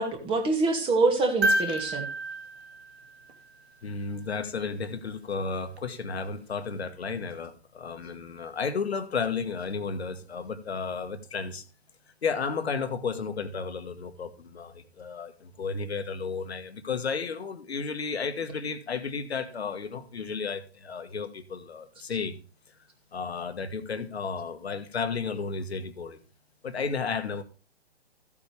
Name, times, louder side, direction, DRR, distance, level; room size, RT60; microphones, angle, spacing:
voice 1, 0.0-2.1, right 3 dB, 15° right, 2.3 m, -25 dB
sound 1, 1.4-3.7 5.8-5.9, right 1 dB, 70° right, 2.2 m, -30 dB
voice 2, 3.8-11.6 12.2-22.4 23.1-26.2 26.6-27.4, left 5 dB, 70° left, 1.6 m, -33 dB
14.5 x 8.6 x 3.4 m
figure-of-eight pair, 130°, 33 cm